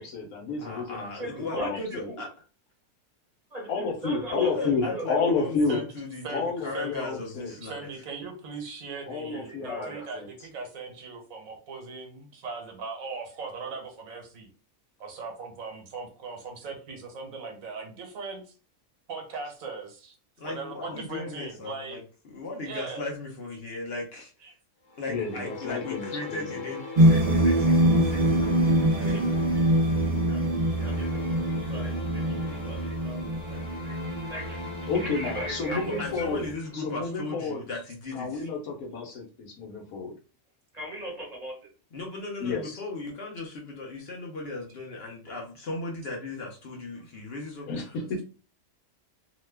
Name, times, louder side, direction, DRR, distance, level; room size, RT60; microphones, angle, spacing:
voice 1, 0.0-2.1 3.7-5.8 6.3-7.5 9.1-10.3 25.1-26.6 34.9-37.6 38.1-40.1 42.4-42.7 47.7-48.2, left 4 dB, 80° left, 2 dB, 1.2 m, -31 dB
voice 2, 0.6-2.3 4.3-7.9 20.4-24.5 25.0-28.4 28.9-29.2 35.7-38.5 41.9-48.1, left 2 dB, 55° left, 0 dB, 0.9 m, -37 dB
voice 3, 1.2-1.7 2.1-2.2 3.5-5.3 9.3-10.1 28.3-29.7 30.3-30.5 30.8-34.0 34.3-36.3 40.7-41.7, right 1 dB, 35° right, -2 dB, 0.8 m, -40 dB
voice 4, 6.7-7.1 7.6-14.5 15.0-18.5 19.1-20.2 20.4-22.0 22.6-23.1 24.4-24.5, right 4 dB, 75° right, 3 dB, 1.2 m, -39 dB
sound 1, 24.9-37.2, left 3 dB, 25° left, 0.8 m, -41 dB
sound 2, 27.0-36.5, right 1 dB, 55° right, 0.4 m, -24 dB
2.9 x 2.2 x 3.3 m, 0.37 s
omnidirectional pair, 1.5 m